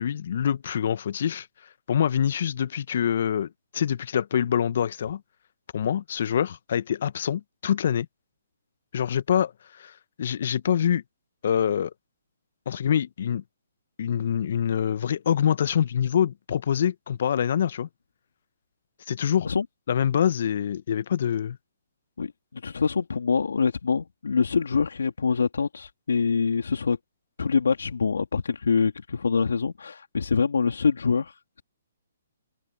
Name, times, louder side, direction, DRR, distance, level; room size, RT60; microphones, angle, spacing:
voice 1, 0.0-1.5 1.9-5.2 5.7-8.1 8.9-11.0 11.4-11.9 12.7-13.4 14.0-17.9 19.1-19.5 19.9-21.6, left 9 dB, 55° left, 1.3 m, -25 dB
voice 2, 22.2-27.0 27.4-31.6, left 5 dB, 75° left, 3.3 m, -25 dB
open air
figure-of-eight pair, 135°, 0 cm